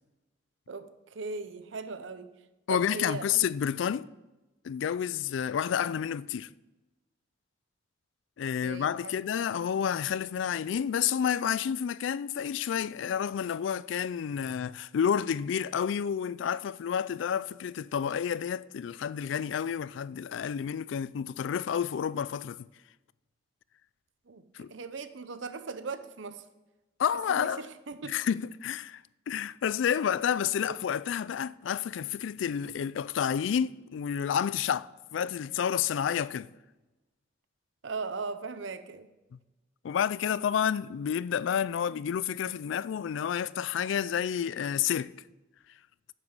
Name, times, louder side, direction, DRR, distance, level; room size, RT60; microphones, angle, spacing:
voice 1, 0.7-2.3 2.7-3.5 8.6-9.1 24.3-26.5 27.3-28.2 30.7-30.8 37.8-39.1, right 4 dB, 80° right, 0.7 m, -39 dB
voice 2, 2.7-4.1 4.6-6.5 8.4-22.7 24.5-24.7 27.0-27.6 28.0-36.5 39.8-45.1, left 8 dB, 80° left, 0.3 m, -30 dB
9.7 x 7.9 x 5.5 m
head